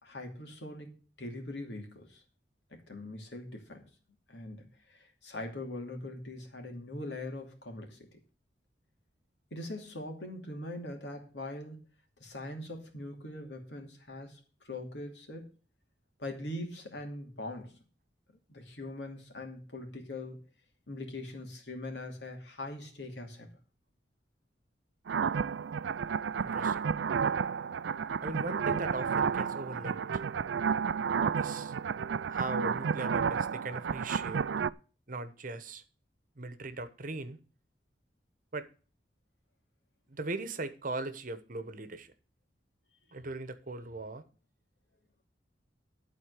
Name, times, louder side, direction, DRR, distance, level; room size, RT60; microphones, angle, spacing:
voice 1, 0.0-0.9 1.2-2.2 2.7-3.9 4.3-8.1 9.5-11.8 12.2-14.4 14.6-15.5 16.2-17.8 18.5-20.4 20.9-23.6, left 1 dB, 75° left, 2.5 m, -42 dB
sound 1, 25.1-34.7, right 6 dB, 85° right, 0.4 m, -31 dB
voice 2, 26.4-26.8 28.2-30.2 31.4-31.7 32.3-34.4 35.1-35.8 36.4-37.4 38.5-38.7 40.1-42.1 43.1-44.2, right 2 dB, 50° right, 1.0 m, -39 dB
12.0 x 4.4 x 8.1 m
head